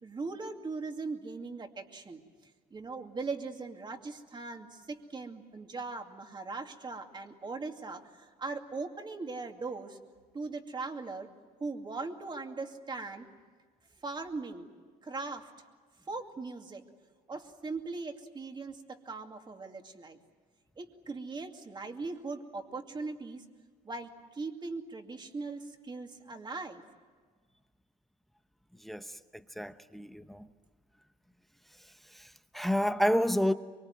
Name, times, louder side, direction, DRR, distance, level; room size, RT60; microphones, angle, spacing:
voice 1, 0.0-2.2 2.7-10.0 10.3-11.3 11.6-13.3 14.0-14.7 15.0-15.5 16.1-16.8 17.3-20.2 20.8-23.4 23.8-26.8, right 3 dB, 25° right, 2.4 m, -39 dB
voice 2, 28.8-30.5 32.1-33.5, equal, ahead, 0.9 m, -30 dB
24.0 x 24.0 x 9.2 m
cardioid pair, 110°, 17 cm